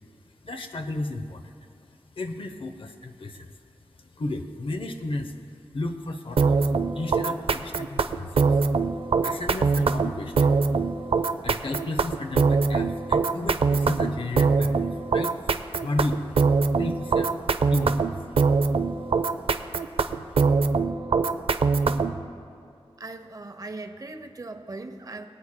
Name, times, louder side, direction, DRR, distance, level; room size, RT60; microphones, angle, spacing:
voice 1, 0.4-1.5 2.2-3.5 4.2-5.3 5.7-6.6 6.9-8.4 8.9-10.6 11.4-16.4 16.8-17.3 17.7-18.2, left 2 dB, 60° left, 6 dB, 0.7 m, -33 dB
sound 1, 6.4-22.2, right 4 dB, 65° right, 0.4 m, -23 dB
voice 2, 23.0-25.3, right 2 dB, 35° right, 7 dB, 0.8 m, -39 dB
23.5 x 8.5 x 2.2 m, 2.4 s
wide cardioid pair, 80°, 10 cm